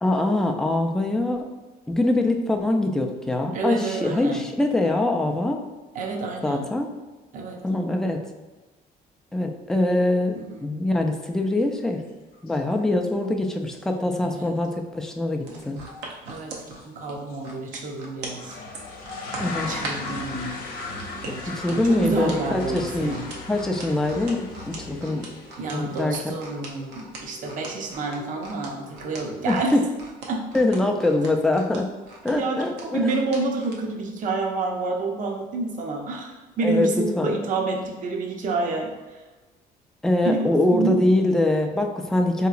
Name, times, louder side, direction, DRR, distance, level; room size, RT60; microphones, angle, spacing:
voice 1, 0.0-1.5 1.9-5.6 6.4-6.9 7.6-8.2 9.3-10.4 10.6-12.0 12.4-15.8 19.4-19.7 21.5-23.2 23.5-25.3 25.7-26.2 29.5-29.8 30.5-31.9 32.2-32.7 33.0-33.1 36.6-36.9 37.2-37.3 40.0-42.5, left 2 dB, 5° left, 3 dB, 0.3 m, -23 dB
voice 2, 3.5-4.4 5.9-6.7 7.3-7.6 10.3-10.7 14.2-14.5 16.3-18.6 19.7-20.6 21.2-23.3 25.6-29.7 30.3-30.5 32.3-38.9 40.2-41.0, right 3 dB, 50° right, 1 dB, 0.6 m, -29 dB
sound 1, 11.9-12.0 12.3-12.8 13.1-13.2 13.8-13.9 14.1-14.2 15.9-16.1 16.6-16.8 17.3-17.4 18.2-29.5, left 3 dB, 60° left, 0.8 m, -38 dB
sound 2, 15.4-20.2 21.0-33.8 34.2-34.4, right 3 dB, 85° right, 0.7 m, -40 dB
3.7 x 2.9 x 2.4 m, 1.2 s
cardioid pair, 110°, 17 cm